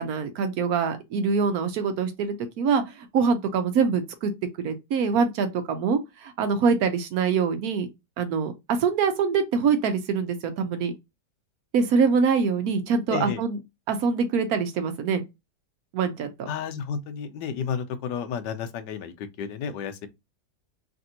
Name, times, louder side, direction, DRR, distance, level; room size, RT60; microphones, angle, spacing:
voice 1, 0.0-4.3 4.6-7.9 8.2-10.9 11.7-13.6 13.9-15.2 15.9-16.5, right 5 dB, 70° right, 1.0 m, -24 dB
voice 2, 13.1-13.4 16.5-20.1, left 7 dB, 90° left, 1.2 m, -32 dB
3.3 x 2.6 x 2.7 m
omnidirectional pair, 1.8 m